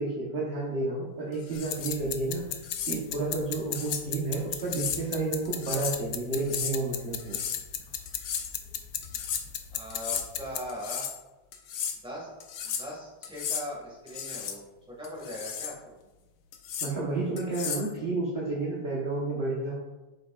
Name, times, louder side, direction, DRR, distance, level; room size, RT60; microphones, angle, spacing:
voice 1, 0.0-2.6 2.9-7.4 16.8-19.7, right 3 dB, 40° right, -5 dB, 1.0 m, -31 dB
sound 1, 1.4-2.0 2.6-3.0 3.8-4.1 4.6-5.0 5.5-6.0 6.4-6.8 7.2-7.7 8.1-8.5 9.0-9.4 9.9-10.3 10.7-11.2 11.5-12.0 12.4-12.9 13.2-13.7 14.1-14.6 15.0-15.8 16.5-16.9 17.4-17.9, left 8 dB, 65° left, 1.1 m, -35 dB
sound 2, 1.6-10.6, left 9 dB, 85° left, 0.7 m, -37 dB
voice 2, 9.7-11.0 12.0-15.9, equal, 5° right, -4 dB, 1.5 m, -40 dB
7.7 x 5.2 x 2.4 m, 1.1 s
omnidirectional pair, 2.1 m